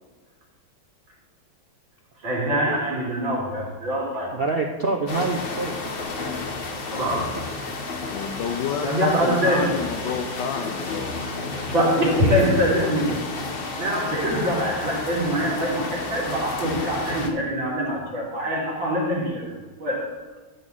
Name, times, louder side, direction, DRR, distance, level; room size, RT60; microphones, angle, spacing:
voice 1, 2.2-4.4 6.9-7.4 8.8-9.7 11.7-13.2 13.8-19.5 19.8-20.1, equal, 70° right, -4 dB, 3.7 m, -24 dB
voice 2, 4.3-5.9 11.1-11.4 17.1-17.2, right 3 dB, 90° right, 1 dB, 0.5 m, -27 dB
sound 1, 5.1-17.3, left 3 dB, 40° left, 0.9 m, -32 dB
voice 3, 8.1-11.3, left 7 dB, 70° left, 4 dB, 1.3 m, -29 dB
12.0 x 4.3 x 7.5 m, 1.3 s
omnidirectional pair, 2.2 m